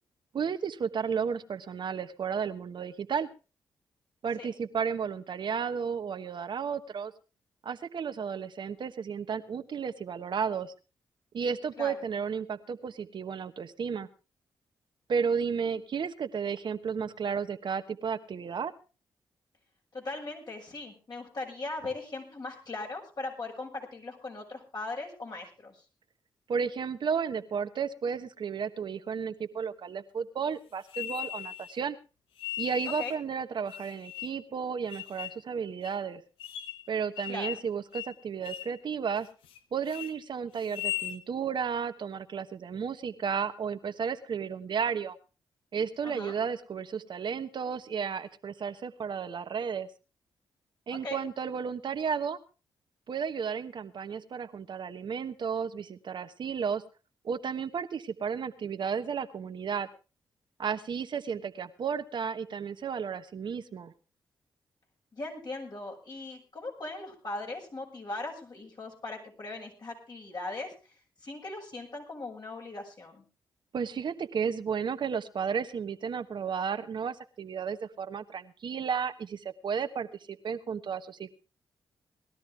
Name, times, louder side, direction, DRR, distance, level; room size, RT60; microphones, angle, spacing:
voice 1, 0.3-3.3 4.2-7.1 7.6-10.7 11.3-14.1 15.1-18.7 26.5-32.0 32.6-36.2 36.9-39.3 39.7-45.2 45.7-49.9 50.9-52.4 53.1-56.8 57.2-59.9 60.6-63.9 73.7-81.3, right 6 dB, 60° right, 9 dB, 1.2 m, -33 dB
voice 2, 19.9-25.8 33.0-33.1 37.3-37.6 46.0-46.3 50.9-51.2 65.1-70.7 71.2-73.2, left 2 dB, 50° left, 0 dB, 6.6 m, -39 dB
sound 1, 30.9-31.7 32.4-33.2 33.7-34.4 34.9-35.4 35.8-35.9 36.4-36.9 37.2-37.7 37.9-38.1 38.4-38.8 39.2-39.6 39.9-40.1 40.6-41.2, left 13 dB, 80° left, 1.0 m, -38 dB
20.0 x 13.0 x 3.5 m, 0.32 s
supercardioid pair, 45°, 9 cm